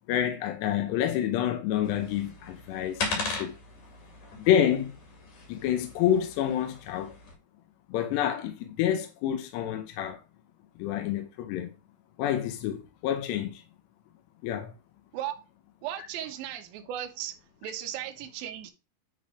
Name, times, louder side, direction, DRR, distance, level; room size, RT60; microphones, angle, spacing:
voice 1, 0.1-3.6 4.4-4.9 5.5-7.2 7.9-10.2 10.8-11.7 12.2-13.6 14.4-14.7, left 10 dB, 75° left, 2.9 m, -28 dB
sound 1, 1.8-7.3, left 3 dB, 50° left, 3.2 m, -38 dB
voice 2, 15.8-17.4 17.6-18.7, right 11 dB, 80° right, 2.1 m, -36 dB
9.8 x 4.0 x 4.8 m
omnidirectional pair, 5.3 m